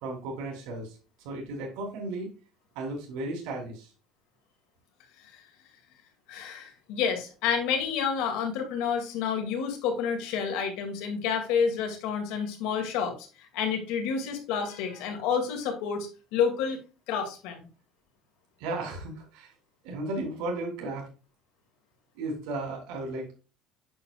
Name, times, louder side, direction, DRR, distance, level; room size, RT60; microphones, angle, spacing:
voice 1, 0.0-1.0 1.2-2.3 2.7-3.9 18.6-19.5 19.8-21.1 22.1-23.3, right 2 dB, 75° right, 0 dB, 3.2 m, -34 dB
voice 2, 6.3-13.1 13.5-16.8 17.1-17.6, left 6 dB, 70° left, 4 dB, 2.2 m, -29 dB
8.7 x 6.7 x 2.3 m, 0.34 s
cardioid pair, 170°, 0 cm